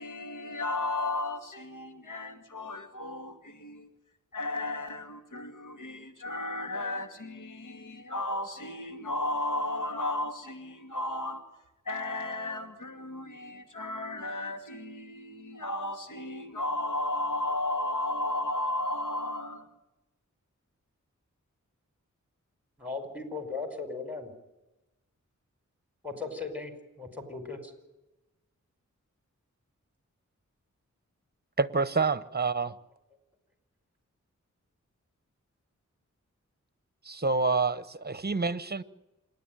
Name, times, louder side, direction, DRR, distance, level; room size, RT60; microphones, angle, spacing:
voice 1, 0.0-3.9 4.3-11.4 11.9-19.7, left 2 dB, 85° left, 2.5 m, -34 dB
voice 2, 22.8-24.3 26.0-26.7 27.0-27.7, left 4 dB, 5° right, 5.1 m, -37 dB
voice 3, 31.6-32.8 37.0-38.8, right 4 dB, 30° right, 1.0 m, -27 dB
27.0 x 10.5 x 9.0 m
wide cardioid pair, 55°, 31 cm